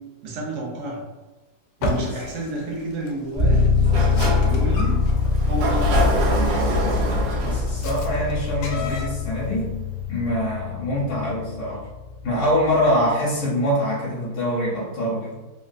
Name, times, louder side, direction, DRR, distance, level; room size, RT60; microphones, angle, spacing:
voice 1, 0.2-1.0 1.8-3.6 4.4-5.0 5.5-6.1, right 1 dB, 55° right, -2 dB, 0.9 m, -29 dB
sound 1, 1.8-9.1, left 1 dB, 80° left, 1.2 m, -33 dB
sound 2, 3.4-13.1, left 4 dB, 20° left, 0.7 m, -24 dB
Sliding door, 3.7-9.4, equal, 85° right, 1.4 m, -25 dB
voice 2, 7.4-9.7 10.1-11.8 12.2-15.4, equal, 60° left, -8 dB, 1.3 m, -24 dB
3.4 x 2.5 x 2.5 m, 1.2 s
omnidirectional pair, 1.9 m